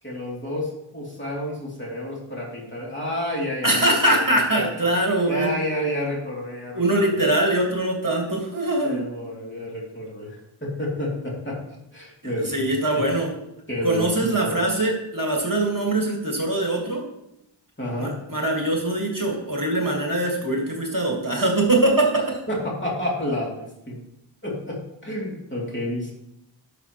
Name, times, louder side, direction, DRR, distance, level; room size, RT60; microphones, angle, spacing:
voice 1, 0.0-4.9 5.3-7.3 8.8-11.6 11.9-13.0 13.7-14.6 17.8-18.2 22.5-24.0 24.4-26.1, left 1 dB, 25° left, -4 dB, 2.8 m, -30 dB
voice 2, 3.6-5.5 6.7-9.0 12.5-13.3 13.8-17.0 18.0-22.4, right 1 dB, 40° right, -1 dB, 1.9 m, -22 dB
11.5 x 6.5 x 3.1 m, 0.84 s
wide cardioid pair, 45°, 48 cm